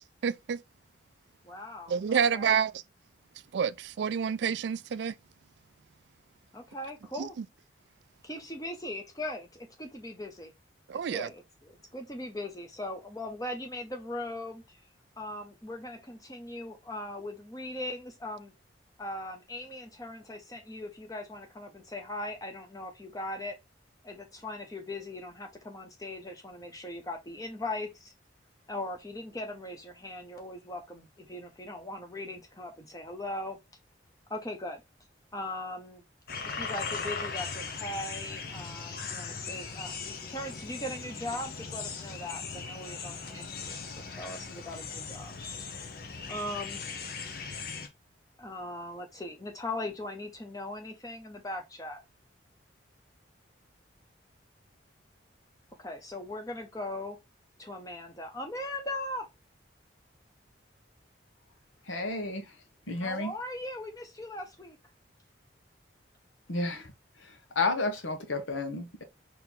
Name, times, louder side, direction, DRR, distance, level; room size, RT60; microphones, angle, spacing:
voice 1, 0.2-0.6 1.9-2.7 3.5-5.1 7.2-7.3 10.9-11.3, right 7 dB, 65° right, 0.3 m, -28 dB
voice 2, 1.4-2.5 6.5-7.4 8.2-10.5 11.1-14.8 15.2-18.5 19.0-23.6 24.0-28.1 28.7-33.6 34.3-34.8 35.3-36.0 36.4-45.3 45.6-45.7 46.3-46.8 48.4-52.0 55.8-57.2 57.6-59.3 63.0-64.8, left 1 dB, 20° left, 0.9 m, -39 dB
sound 1, 36.3-47.9, left 5 dB, 50° left, 0.7 m, -39 dB
voice 3, 61.9-62.5 62.9-63.3 66.5-66.9 67.2-69.0, left 3 dB, 80° left, 1.1 m, -32 dB
4.5 x 2.9 x 3.6 m
head